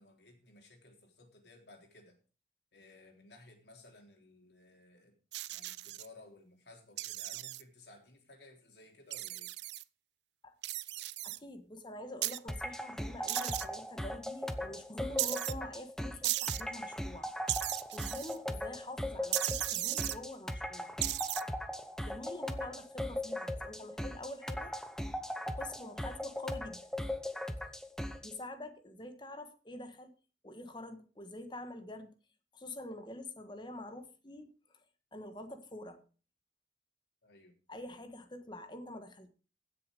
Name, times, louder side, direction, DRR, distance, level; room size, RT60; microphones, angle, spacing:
voice 1, 0.0-2.2 2.7-5.2 5.5-9.5 37.2-37.6, left 2 dB, 75° left, 3.6 m, -58 dB
sound 1, 5.3-6.1 7.0-7.6 9.1-9.8 10.6-11.4 12.2-12.4 13.3-13.6 15.2-15.5 16.2-16.6 17.5-18.4 19.3-20.2 21.0-21.4, right 16 dB, 80° right, 0.5 m, -36 dB
voice 2, 11.2-17.3 17.9-20.9 22.1-24.7 25.6-26.8 27.5-27.6 28.2-30.1 30.4-32.1 32.5-34.5 35.1-36.0 37.7-39.3, left 1 dB, 25° left, 1.4 m, -46 dB
sound 2, 12.5-28.4, left 1 dB, 5° left, 0.9 m, -39 dB
16.0 x 6.9 x 5.2 m
head